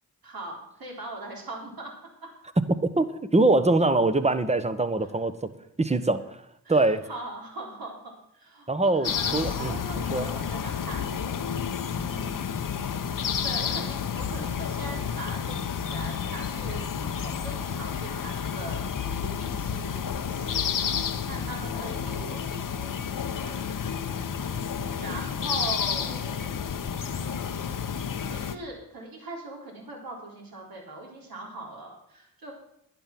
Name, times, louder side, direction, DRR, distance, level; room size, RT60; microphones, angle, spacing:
voice 1, 0.2-1.9 2.2-2.3 6.6-11.1 11.4-12.5 13.4-18.8 19.1-20.6 20.9-24.1 24.3-26.6 27.8-28.0 28.3-32.5, right 2 dB, 65° right, -1 dB, 3.9 m, -41 dB
voice 2, 3.3-5.5 5.8-6.2 6.7-7.0 8.7-10.3, right 2 dB, 15° right, 12 dB, 1.1 m, -23 dB
sound 1, 9.0-28.6, left 7 dB, 55° left, 0.9 m, -30 dB
11.0 x 10.5 x 6.0 m, 0.76 s
cardioid pair, 55°, 38 cm